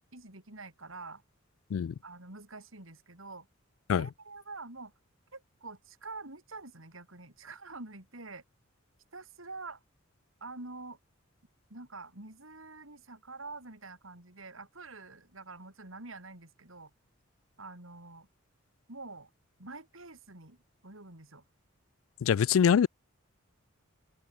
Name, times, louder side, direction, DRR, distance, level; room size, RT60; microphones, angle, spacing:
voice 1, 0.1-1.2 2.0-3.5 4.0-4.9 5.3-8.4 9.1-9.8 10.4-11.0 11.7-16.9 17.6-18.3 18.9-19.3 19.6-20.6 20.8-21.4, right 3 dB, 75° right, 5.9 m, -46 dB
voice 2, 22.2-22.9, left 7 dB, 75° left, 0.3 m, -24 dB
open air
head